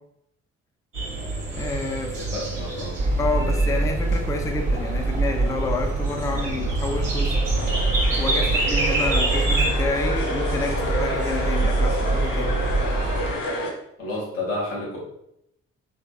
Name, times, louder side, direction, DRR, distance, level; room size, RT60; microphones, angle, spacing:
sound 1, 0.9-9.7, right 2 dB, 80° right, 0.7 m, -28 dB
voice 1, 1.5-2.2 3.2-7.4 8.2-12.6, left 3 dB, 10° left, 3 dB, 0.3 m, -29 dB
voice 2, 2.2-2.9 14.0-15.0, left 2 dB, 85° left, -5 dB, 0.8 m, -30 dB
sound 2, 3.0-13.3, right 2 dB, 25° right, 0.6 m, -25 dB
sound 3, 7.5-13.7, left 1 dB, 55° left, 0.8 m, -30 dB
3.1 x 2.7 x 2.2 m, 0.78 s
figure-of-eight pair, 40°, 36 cm